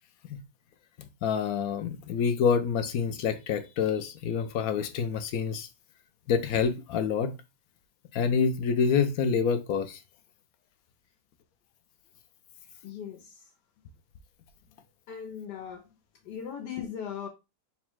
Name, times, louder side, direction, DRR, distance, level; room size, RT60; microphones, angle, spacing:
voice 1, 1.0-5.7 6.3-7.4 8.1-10.0, left 6 dB, 70° left, 0.9 m, -27 dB
voice 2, 12.8-13.5 15.1-15.9 16.2-17.3, left 8 dB, 85° left, 1.4 m, -38 dB
4.0 x 2.1 x 4.5 m
omnidirectional pair, 1.8 m